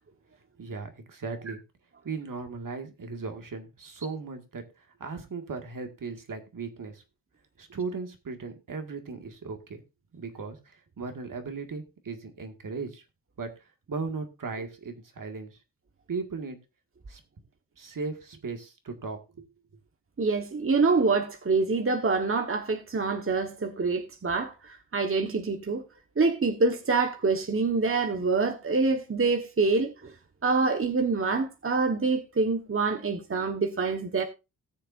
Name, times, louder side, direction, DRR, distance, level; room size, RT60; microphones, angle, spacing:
voice 1, 0.6-1.6 2.0-4.6 5.0-7.0 7.6-9.8 10.1-10.6 11.0-13.0 13.4-13.5 13.9-15.5 16.1-16.6 17.1-17.2 17.8-19.5, right 4 dB, 60° right, 1.9 m, -37 dB
voice 2, 20.2-25.8 26.2-30.1 30.4-34.2, right 4 dB, 35° right, 1.3 m, -26 dB
18.5 x 6.7 x 2.6 m
cardioid pair, 70°, 37 cm